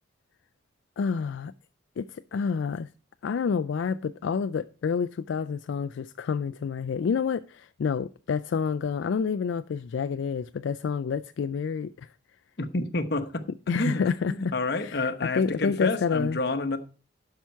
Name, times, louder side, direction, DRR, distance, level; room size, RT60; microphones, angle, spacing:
voice 1, 1.0-1.5 2.0-2.9 3.2-12.1 13.7-14.5 14.8-16.4, left 6 dB, 75° left, 0.3 m, -28 dB
voice 2, 12.6-13.4 13.8-14.0 14.3-16.8, left 2 dB, 55° left, 1.0 m, -29 dB
12.0 x 5.8 x 4.4 m
head